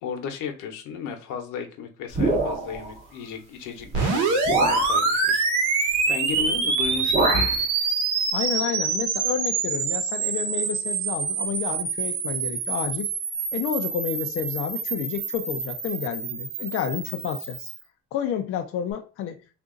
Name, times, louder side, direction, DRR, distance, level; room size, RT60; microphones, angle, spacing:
voice 1, 0.0-5.5 5.7-7.3 7.8-8.0, left 6 dB, 90° left, 0.9 m, -35 dB
sound 1, 2.1-2.9 3.8-3.9 4.4-4.9 6.3-6.6 6.8-7.6, right 2 dB, 20° right, 0.8 m, -25 dB
sound 2, 3.9-17.8, right 4 dB, 75° right, 1.0 m, -26 dB
voice 2, 8.3-13.1 13.5-17.7 18.1-19.5, left 9 dB, 45° left, 0.4 m, -30 dB
2.9 x 2.5 x 3.7 m
cardioid pair, 180°, 30 cm